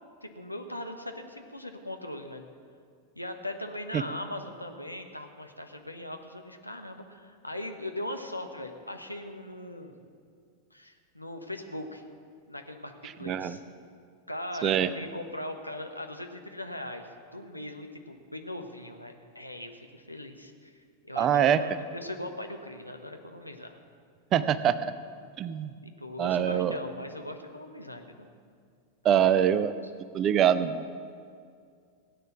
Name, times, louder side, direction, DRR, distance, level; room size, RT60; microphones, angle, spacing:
voice 1, 0.2-2.4 3.1-9.9 10.7-12.0 12.5-12.9 13.2-13.6 14.3-23.8 25.8-28.3, left 1 dB, 90° left, 5 dB, 1.2 m, -40 dB
voice 2, 13.3-13.6 14.6-14.9 21.2-21.6 24.3-24.9 25.4-25.7 26.2-26.8 29.0-29.7 30.1-30.8, right 9 dB, 30° right, 15 dB, 0.6 m, -24 dB
17.0 x 9.4 x 6.0 m, 2.2 s
figure-of-eight pair, 90°, 0 cm